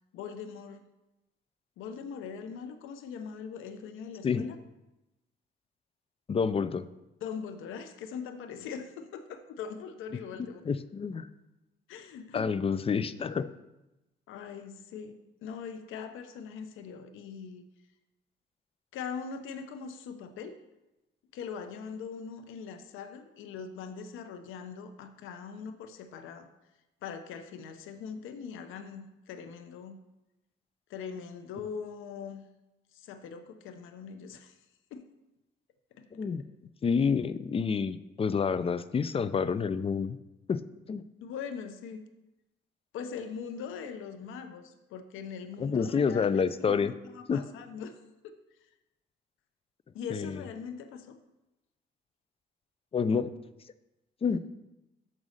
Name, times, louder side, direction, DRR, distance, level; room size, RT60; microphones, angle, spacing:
voice 1, 0.1-0.8 1.8-4.6 7.2-10.6 11.9-12.5 14.3-17.7 18.9-20.6 21.3-26.5 27.0-30.0 30.9-32.5 32.9-34.5 34.9-35.0 35.9-36.1 41.2-42.1 42.9-48.0 48.2-48.4 49.9-51.2, left 6 dB, 90° left, 9 dB, 0.7 m, -41 dB
voice 2, 4.2-4.5 6.3-6.9 10.6-11.3 12.3-13.5 36.1-36.4 36.8-40.2 40.5-40.6 40.9-41.0 45.6-46.9 47.3-47.4 50.1-50.4 52.9-53.3 54.2-54.4, left 6 dB, 30° left, 15 dB, 0.4 m, -28 dB
6.2 x 5.5 x 6.4 m, 0.97 s
cardioid pair, 90°, 20 cm